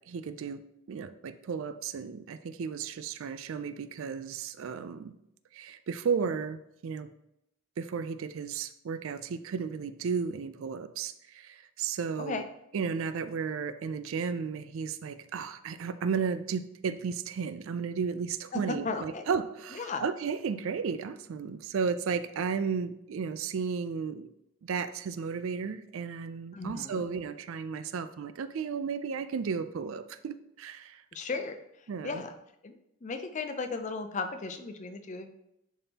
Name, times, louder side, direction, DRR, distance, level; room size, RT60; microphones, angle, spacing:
voice 1, 0.1-0.6 0.9-5.1 5.5-7.1 7.8-12.4 12.7-24.3 24.6-31.0 31.9-32.2, right 6 dB, 60° right, 13 dB, 0.3 m, -34 dB
voice 2, 18.5-19.3 19.7-20.0 26.5-27.1 31.1-32.3 32.6-32.7 33.0-35.3, left 4 dB, 35° left, 7 dB, 0.4 m, -35 dB
10.5 x 3.6 x 2.8 m, 0.82 s
head